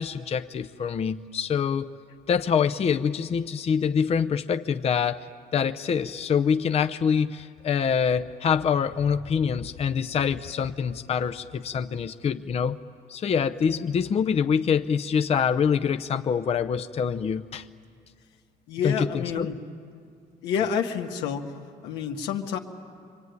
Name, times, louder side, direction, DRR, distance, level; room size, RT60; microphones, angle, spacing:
voice 1, 0.0-1.9 2.3-12.8 13.1-17.7 18.8-19.5, left 7 dB, 40° left, 7 dB, 0.7 m, -25 dB
voice 2, 18.7-19.6 20.4-21.5 21.8-22.6, left 7 dB, 90° left, 2 dB, 1.9 m, -28 dB
26.5 x 23.5 x 9.6 m, 2.2 s
cardioid pair, 110°, 17 cm